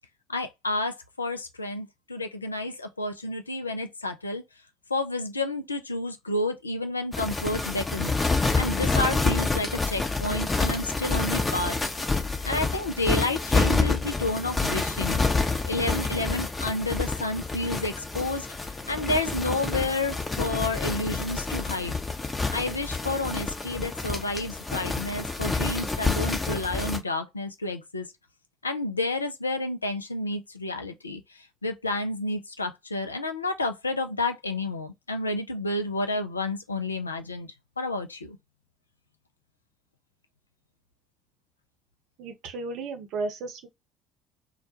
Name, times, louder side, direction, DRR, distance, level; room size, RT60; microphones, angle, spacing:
voice 1, 0.3-4.4 4.9-8.2 8.6-11.8 12.4-22.0 22.5-28.1 28.6-38.4, left 2 dB, 90° left, 0.3 m, -30 dB
sound 1, 7.1-27.0, left 3 dB, 20° left, 0.7 m, -28 dB
voice 2, 42.2-43.7, right 3 dB, 60° right, 0.6 m, -34 dB
2.2 x 2.1 x 2.8 m
figure-of-eight pair, 55°, 0 cm